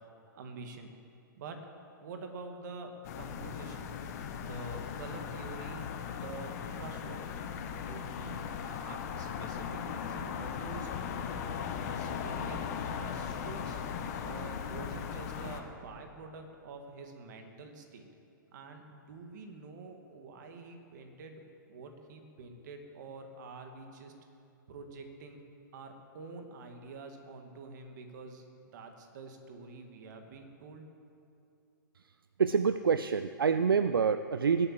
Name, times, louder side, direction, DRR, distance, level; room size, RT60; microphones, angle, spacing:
voice 1, 0.3-0.9 1.4-1.6 2.0-3.9 4.4-5.9 6.2-7.2 7.7-10.9 11.9-13.8 14.2-18.0 18.5-21.4 21.7-24.1 24.7-25.4 25.7-28.4 28.7-30.9, right 3 dB, 55° right, 5 dB, 2.3 m, -47 dB
sound 1, 3.0-15.6, left 7 dB, 50° left, 1.6 m, -38 dB
voice 2, 32.4-34.7, right 6 dB, 85° right, 12 dB, 0.5 m, -27 dB
20.0 x 8.9 x 7.6 m, 2.6 s
hypercardioid pair, 120°, 11 cm